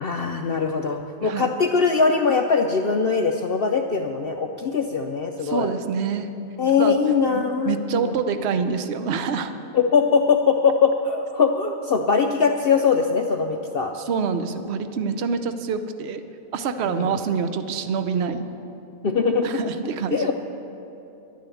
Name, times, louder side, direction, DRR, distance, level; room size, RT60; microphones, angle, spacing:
voice 1, 0.0-5.7 6.6-8.2 9.7-13.9 16.9-17.1 19.0-19.5 20.1-20.3, left 5 dB, 65° left, 4 dB, 0.5 m, -21 dB
voice 2, 5.4-6.3 6.8-7.0 7.3-9.5 14.1-16.2 16.5-18.4 19.4-20.3, right 6 dB, 55° right, 9 dB, 0.8 m, -26 dB
11.5 x 10.5 x 7.0 m, 2.9 s
omnidirectional pair, 1.6 m